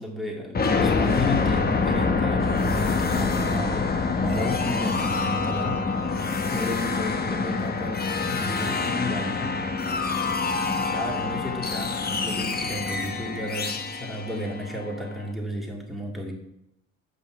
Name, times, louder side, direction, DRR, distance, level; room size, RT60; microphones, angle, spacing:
voice 1, 0.0-9.7 10.6-16.3, left 1 dB, ahead, -1 dB, 2.3 m, -33 dB
sound 1, 0.5-15.2, left 4 dB, 30° left, 1.0 m, -26 dB
8.0 x 5.5 x 4.6 m, 0.83 s
supercardioid pair, 75°, 34 cm